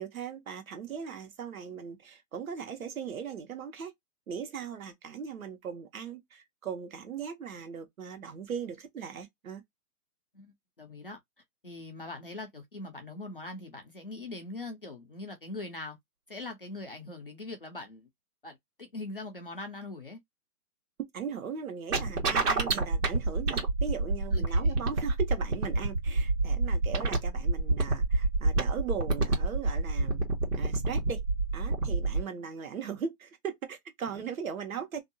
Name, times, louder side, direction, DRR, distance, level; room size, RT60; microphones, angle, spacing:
voice 1, 0.0-3.9 4.3-9.6 21.1-30.2 30.5-31.2 31.5-35.0, right 7 dB, 60° right, 1.1 m, -38 dB
voice 2, 10.3-11.2 11.6-16.0 16.3-18.1 18.4-20.2 24.3-24.8, left 2 dB, 40° left, 0.4 m, -42 dB
sound 1, 21.9-32.2, right 3 dB, 85° right, 1.3 m, -27 dB
2.6 x 2.3 x 2.6 m
hypercardioid pair, 165°, 46 cm